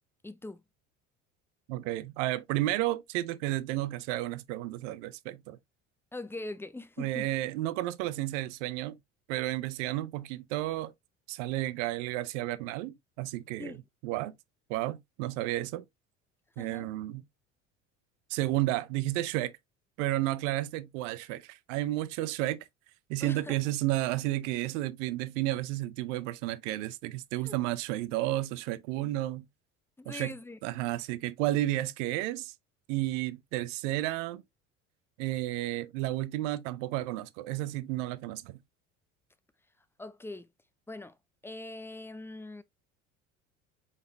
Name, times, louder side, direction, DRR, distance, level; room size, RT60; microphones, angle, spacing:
voice 1, 0.2-0.6 6.1-7.3 13.6-13.8 16.6-16.9 23.2-23.6 27.4-27.6 30.0-30.6 40.0-40.5 40.9-41.2 41.4-42.6, left 2 dB, 5° left, 0.4 m, -42 dB
voice 2, 1.7-5.6 7.0-9.0 9.3-10.9 11.3-13.7 14.0-14.3 14.7-15.8 16.6-17.2 18.3-19.5 20.0-22.7 23.1-29.5 30.1-30.4 30.6-32.5 32.9-34.4 35.2-38.6, right 16 dB, 65° right, 0.6 m, -32 dB
4.9 x 4.1 x 2.5 m
hypercardioid pair, 60°, 40 cm